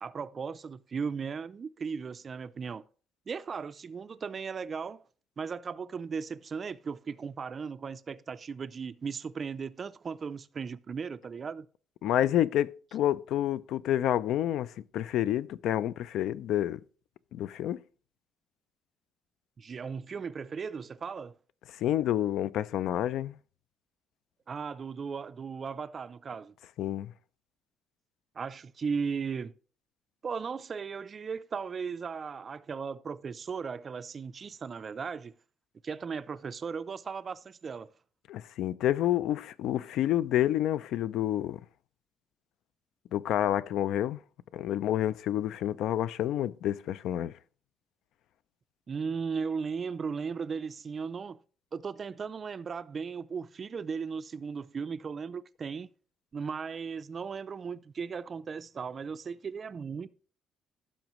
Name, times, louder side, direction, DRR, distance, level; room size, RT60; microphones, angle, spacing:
voice 1, 0.0-2.8 3.3-5.0 5.4-11.7 19.6-21.3 24.5-26.5 28.4-29.5 30.2-35.3 35.8-37.9 48.9-51.4 51.7-55.9 56.3-60.1, right 5 dB, 30° right, 0.3 m, -36 dB
voice 2, 12.0-16.8 17.3-17.8 21.8-23.4 26.8-27.1 38.3-41.6 43.1-44.2 44.5-47.3, left 12 dB, 70° left, 0.4 m, -29 dB
15.5 x 6.2 x 3.0 m
cardioid pair, 175°, 0 cm